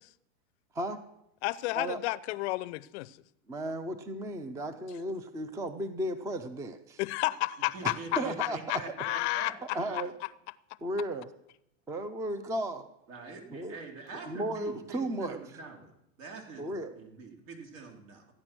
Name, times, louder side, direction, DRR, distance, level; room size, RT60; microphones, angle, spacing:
voice 1, 1.4-3.2 7.0-10.0, left 19 dB, 50° left, 0.6 m, -32 dB
voice 2, 3.5-7.0 7.8-9.0 9.7-10.1 10.8-11.3 11.9-12.9 13.5-13.8 14.2-15.4 16.6-17.0, right 1 dB, 10° right, 0.5 m, -34 dB
voice 3, 7.7-10.1 13.1-15.9 16.2-18.3, right 3 dB, 70° right, 3.6 m, -45 dB
15.0 x 9.8 x 6.1 m
supercardioid pair, 130°, 42 cm